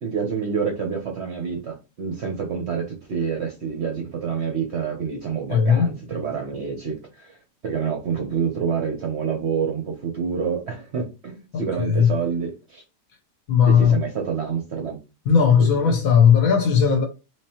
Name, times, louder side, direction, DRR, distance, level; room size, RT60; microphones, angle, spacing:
voice 1, 0.0-7.4 7.6-12.8 13.6-15.0 15.6-15.9, right 6 dB, 55° right, 0.8 m, -27 dB
voice 2, 5.5-5.9 11.5-12.1 13.5-14.0 15.3-17.0, left 7 dB, 65° left, 1.1 m, -17 dB
3.6 x 3.1 x 2.8 m
omnidirectional pair, 1.8 m